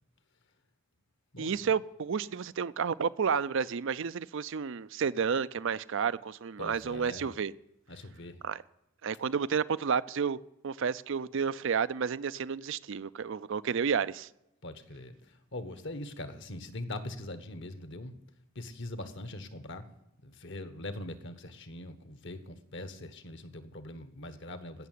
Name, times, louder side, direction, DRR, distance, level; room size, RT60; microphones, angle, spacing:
voice 1, 1.4-7.5 8.4-8.6 9.0-10.4 10.6-14.3, right 6 dB, 60° right, 0.5 m, -31 dB
voice 2, 6.6-7.3 7.9-8.4 14.6-18.1 18.5-19.9 20.2-24.9, left 1 dB, 55° left, 1.3 m, -42 dB
16.5 x 6.7 x 9.5 m
head